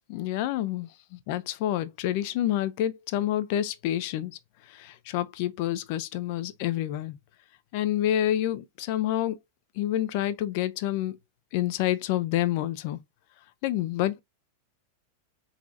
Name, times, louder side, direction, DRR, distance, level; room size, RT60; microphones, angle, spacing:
voice 1, 0.1-0.9 1.3-4.4 4.7-7.2 7.7-9.4 9.8-11.2 11.5-13.0 13.6-14.2, left 12 dB, 45° left, 0.6 m, -28 dB
4.6 x 4.0 x 2.7 m
figure-of-eight pair, 90°, 0 cm